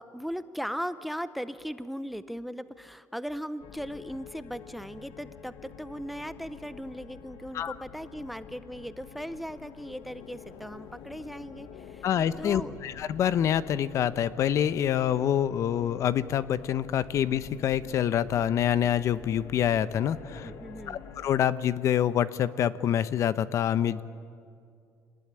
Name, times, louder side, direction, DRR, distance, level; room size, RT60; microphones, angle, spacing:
voice 1, 0.0-12.1 12.4-12.8 20.3-21.0, equal, ahead, 13 dB, 0.6 m, -38 dB
sound 1, 3.6-21.5, left 7 dB, 80° left, 1.6 m, -47 dB
voice 2, 12.0-20.5 20.9-24.0, left 10 dB, 50° left, 15 dB, 0.8 m, -26 dB
25.0 x 19.5 x 10.0 m, 2.3 s
cardioid pair, 145°, 6 cm